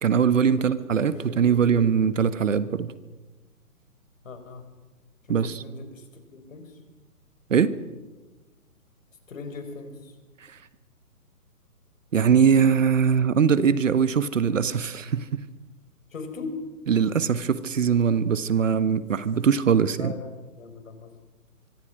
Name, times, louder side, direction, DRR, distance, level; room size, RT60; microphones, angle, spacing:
voice 1, 0.0-2.9 5.3-5.6 7.5-7.7 12.1-15.4 16.9-20.1, right 7 dB, 55° right, 15 dB, 1.4 m, -21 dB
voice 2, 1.1-1.8 4.2-4.7 5.3-6.8 9.3-10.1 16.1-16.6 20.0-20.3 20.6-21.1, left 4 dB, 60° left, 7 dB, 5.4 m, -40 dB
24.5 x 24.0 x 6.2 m, 1.2 s
figure-of-eight pair, 140°, 45 cm